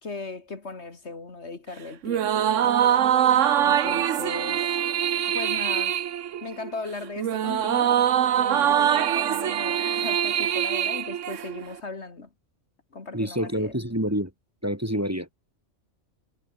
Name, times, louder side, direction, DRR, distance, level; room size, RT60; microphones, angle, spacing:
voice 1, 0.0-2.9 3.6-4.7 5.3-6.0 6.4-8.0 8.3-12.3 12.9-13.8, left 3 dB, 65° left, 2.6 m, -38 dB
sound 1, 2.0-11.8, right 10 dB, 85° right, 1.2 m, -23 dB
voice 2, 13.1-14.3 14.6-15.3, equal, 10° right, 3.1 m, -27 dB
omnidirectional pair, 1.3 m